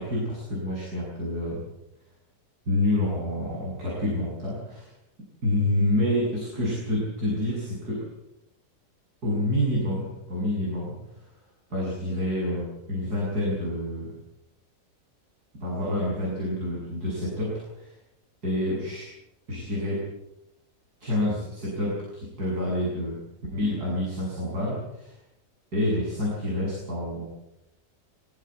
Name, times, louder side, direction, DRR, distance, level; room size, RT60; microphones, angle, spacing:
voice 1, 0.0-1.6 2.7-4.9 5.4-8.0 9.2-11.3 11.7-14.1 15.6-17.9 18.4-19.1 19.5-20.0 21.0-23.2 23.5-25.1 25.7-27.2, left 1 dB, 65° right, -5 dB, 8.2 m, -28 dB
23.0 x 17.5 x 8.1 m, 0.87 s
omnidirectional pair, 1.8 m